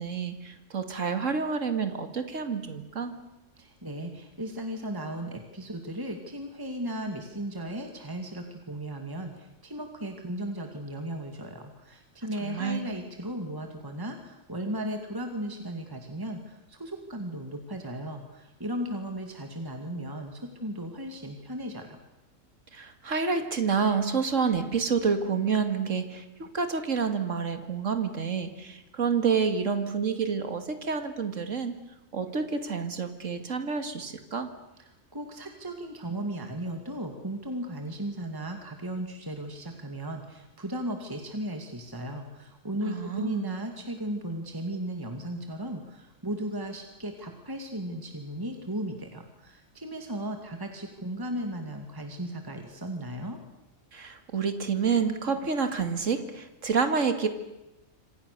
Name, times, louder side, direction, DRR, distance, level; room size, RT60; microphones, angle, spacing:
voice 1, 0.0-3.1 12.4-12.8 22.7-31.7 32.1-34.5 42.8-43.6 53.9-57.3, right 5 dB, 65° right, 8 dB, 2.5 m, -28 dB
voice 2, 3.6-22.0 34.8-53.4, right 1 dB, 15° right, 4 dB, 2.3 m, -36 dB
27.0 x 26.5 x 6.8 m, 0.96 s
omnidirectional pair, 1.4 m